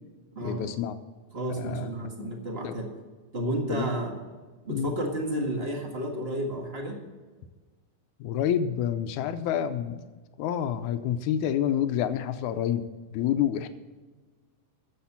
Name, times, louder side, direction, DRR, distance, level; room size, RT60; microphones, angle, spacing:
voice 1, 0.4-1.0 1.6-2.4 2.6-2.8 3.7-3.8 4.7-4.9 8.2-10.0 10.4-13.7, left 9 dB, 80° left, 10 dB, 2.0 m, -28 dB
voice 2, 1.3-2.9 3.3-4.2 4.6-7.0, right 1 dB, 35° right, 1 dB, 1.0 m, -31 dB
10.0 x 7.5 x 7.2 m, 1.4 s
omnidirectional pair, 3.8 m